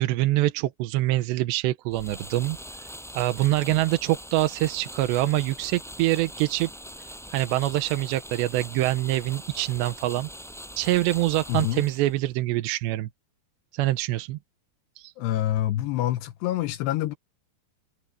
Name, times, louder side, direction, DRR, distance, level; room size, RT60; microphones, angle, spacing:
voice 1, 0.0-6.7 7.0-10.3 10.8-13.1 13.7-14.4 15.0-15.1, right 16 dB, 85° right, 3.0 m, -25 dB
sound 1, 1.9-12.3, equal, ahead, 7.3 m, -42 dB
voice 2, 11.5-11.8 15.2-17.1, left 13 dB, 80° left, 3.0 m, -26 dB
omnidirectional pair, 5.0 m